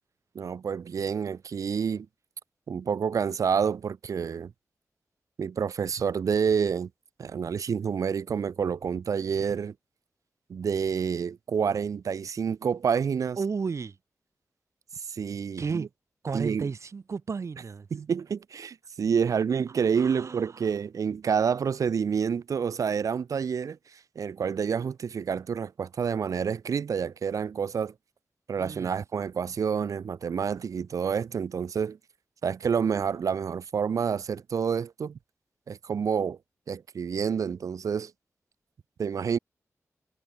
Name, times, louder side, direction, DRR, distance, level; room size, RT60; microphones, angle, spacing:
voice 1, 0.3-2.1 2.7-4.5 5.4-6.9 7.2-9.7 10.5-13.4 15.1-15.9 16.3-16.7 17.9-23.8 24.2-27.9 28.5-32.0 32.4-35.2 35.7-36.4 36.7-38.1 39.0-39.4, right 6 dB, 80° right, 0.9 m, -28 dB
voice 2, 13.4-14.0 15.6-15.9 16.2-17.9 20.0-20.6 28.6-28.9, right 5 dB, 60° right, 5.0 m, -33 dB
wide cardioid pair, 95°, 6 cm